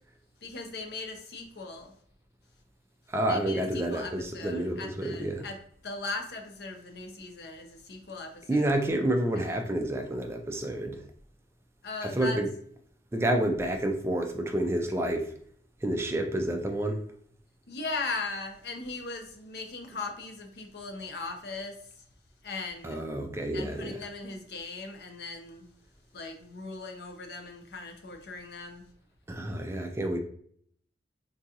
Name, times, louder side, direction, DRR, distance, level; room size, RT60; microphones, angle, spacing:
voice 1, 0.4-1.9 3.3-5.6 5.8-8.6 11.8-12.4 17.7-21.8 22.4-23.0 23.5-25.7 26.1-28.8, left 3 dB, 60° left, 3 dB, 0.6 m, -38 dB
voice 2, 3.1-5.4 8.5-11.0 12.0-12.5 13.1-15.3 15.8-17.0 22.8-24.1 29.3-30.2, right 1 dB, 15° right, 4 dB, 0.3 m, -29 dB
3.8 x 2.4 x 2.7 m, 0.62 s
head